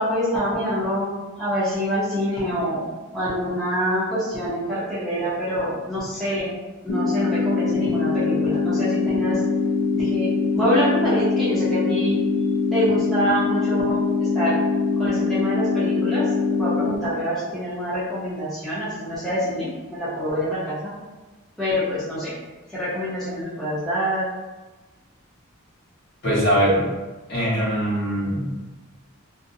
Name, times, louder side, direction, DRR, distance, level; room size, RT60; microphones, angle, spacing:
voice 1, 0.0-2.9 3.1-6.5 6.8-9.4 9.9-12.2 12.7-14.0 14.3-14.6 15.0-16.3 16.6-20.9 21.6-22.3 22.7-24.3, equal, ahead, -11 dB, 0.6 m, -26 dB
sound 1, 6.9-16.9, left 4 dB, 70° left, 0.5 m, -23 dB
voice 2, 26.2-26.8 27.3-28.5, equal, 50° left, -8 dB, 1.1 m, -21 dB
2.5 x 2.1 x 2.6 m, 1.2 s
head